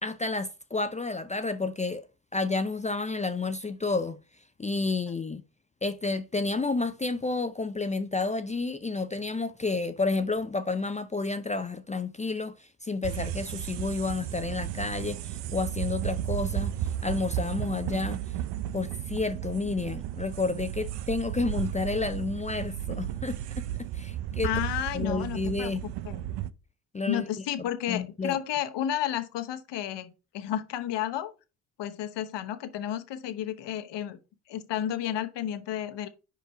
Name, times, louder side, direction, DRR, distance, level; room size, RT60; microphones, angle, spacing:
voice 1, 0.0-2.0 2.3-4.2 4.6-5.4 5.8-16.7 17.0-18.2 18.7-23.6 23.9-24.5 24.9-25.8 26.9-27.2 27.9-28.3, left 3 dB, 15° left, 0.5 m, -30 dB
sound 1, 13.0-26.5, right 12 dB, 60° right, 0.6 m, -34 dB
voice 2, 24.4-25.7 26.0-26.2 27.1-31.3 31.8-34.2 34.5-36.1, left 11 dB, 60° left, 1.1 m, -32 dB
5.0 x 4.7 x 4.6 m
hypercardioid pair, 65°, 48 cm